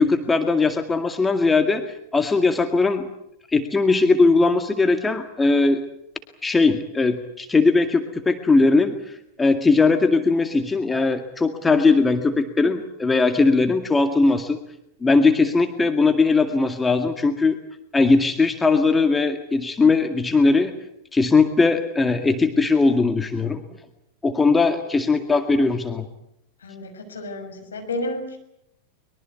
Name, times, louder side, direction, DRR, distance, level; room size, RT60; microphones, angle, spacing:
voice 1, 0.0-1.8 2.1-3.1 3.5-5.9 6.4-8.9 9.4-14.6 15.0-17.6 17.9-20.7 21.1-23.6 24.2-26.1, left 3 dB, 10° left, 7 dB, 2.0 m, -19 dB
voice 2, 26.6-28.4, left 1 dB, 70° left, 5 dB, 6.3 m, -31 dB
23.5 x 23.0 x 8.3 m, 0.77 s
figure-of-eight pair, 90°, 0 cm